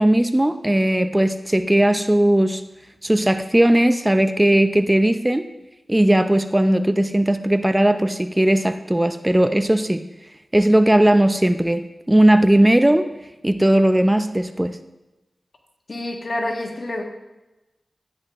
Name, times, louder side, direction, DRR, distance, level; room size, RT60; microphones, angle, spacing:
voice 1, 0.0-2.6 3.0-5.5 5.9-10.0 10.5-13.1 13.4-14.8, right 1 dB, 15° right, 9 dB, 0.5 m, -17 dB
voice 2, 15.9-17.0, left 1 dB, 65° left, 1 dB, 1.6 m, -27 dB
13.5 x 9.4 x 2.5 m, 1.0 s
cardioid pair, 45°, 0 cm